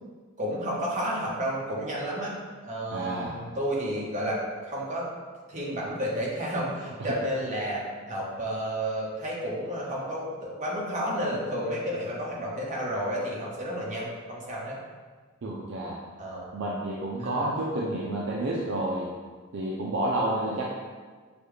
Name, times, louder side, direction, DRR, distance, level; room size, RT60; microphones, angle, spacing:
voice 1, 0.4-2.3 2.6-4.4 4.7-5.1 5.5-14.8 16.2-16.4 17.2-17.5, equal, 35° right, -5 dB, 1.0 m, -31 dB
voice 2, 2.9-3.4 15.4-16.0 16.5-19.1 19.5-20.6, right 1 dB, 60° right, -3 dB, 0.5 m, -30 dB
6.8 x 2.3 x 3.2 m, 1.5 s
head